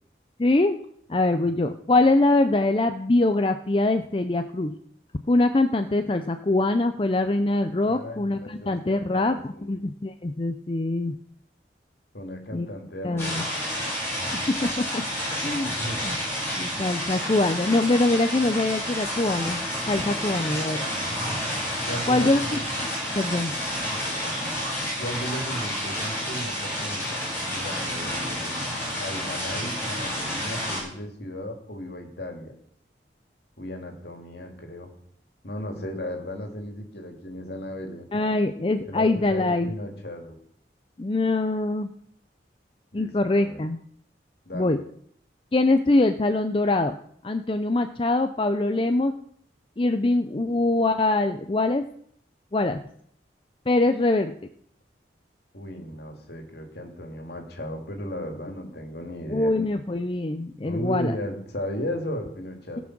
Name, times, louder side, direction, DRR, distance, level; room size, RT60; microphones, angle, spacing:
voice 1, 0.4-0.8 1.1-4.8 5.3-11.1 12.5-12.7 13.0-13.4 14.3-15.0 15.4-15.7 16.0-16.2 16.5-20.8 22.1-22.6 23.2-23.6 38.1-39.7 41.0-41.9 42.9-43.8 44.5-44.8 45.5-46.9 47.2-49.1 49.8-51.9 52.5-52.8 53.7-54.3 59.3-61.2, left 2 dB, 30° left, 8 dB, 0.5 m, -23 dB
voice 2, 7.8-9.8 12.1-13.4 15.6-16.2 17.1-17.3 20.1-21.1 21.9-22.7 23.8-24.3 25.0-28.6 29.0-32.5 33.6-34.9 35.4-38.1 38.8-40.4 42.9-43.6 44.5-44.8 55.5-59.5 60.6-62.8, equal, 65° left, 3 dB, 2.5 m, -36 dB
sound 1, 13.2-30.8, equal, 15° left, 6.5 m, -30 dB
17.0 x 6.2 x 6.0 m, 0.65 s
head